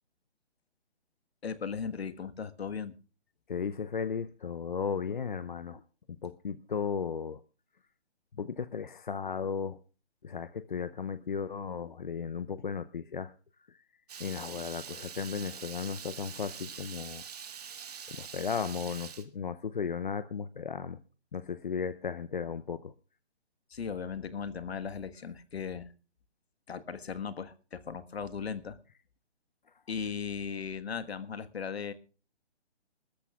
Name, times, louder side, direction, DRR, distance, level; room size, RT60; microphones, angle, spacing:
voice 1, 1.4-2.9 23.7-25.9 26.7-28.8 29.9-31.9, left 6 dB, 65° left, 11 dB, 1.5 m, -37 dB
voice 2, 3.5-5.8 6.2-7.4 8.4-9.8 10.2-13.3 13.7-13.8 14.2-17.2 18.1-21.0 21.3-22.9, left 6 dB, 45° left, 13 dB, 0.7 m, -35 dB
Water tap faucet / Liquid, 14.1-19.2, right 7 dB, 35° right, 1.6 m, -44 dB
27.5 x 13.5 x 2.4 m, 0.36 s
hypercardioid pair, 170°, 34 cm